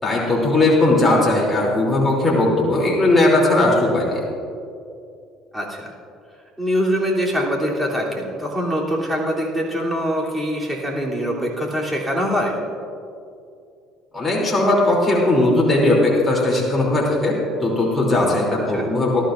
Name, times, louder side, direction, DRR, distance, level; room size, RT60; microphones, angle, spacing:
voice 1, 0.0-4.2 14.1-19.2, left 2 dB, 15° left, -4 dB, 3.1 m, -18 dB
voice 2, 5.5-5.9 6.6-12.5 18.7-18.8, equal, 10° right, -4 dB, 3.2 m, -23 dB
19.0 x 13.5 x 2.6 m, 2.5 s
supercardioid pair, 90°, 0 cm